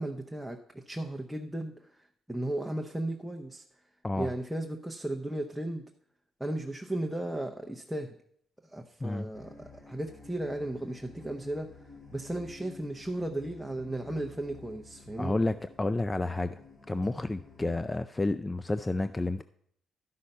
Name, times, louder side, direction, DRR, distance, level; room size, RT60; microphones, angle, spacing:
voice 1, 0.0-3.6 4.2-5.8 6.4-8.2 8.6-11.7 12.1-15.4, right 1 dB, ahead, 2 dB, 0.7 m, -35 dB
sound 1, 9.3-17.9, left 4 dB, 50° left, 2.6 m, -52 dB
voice 2, 15.2-16.6 16.9-19.4, left 2 dB, 20° left, 11 dB, 0.4 m, -30 dB
12.0 x 5.6 x 5.4 m, 0.67 s
cardioid pair, 90°, 0 cm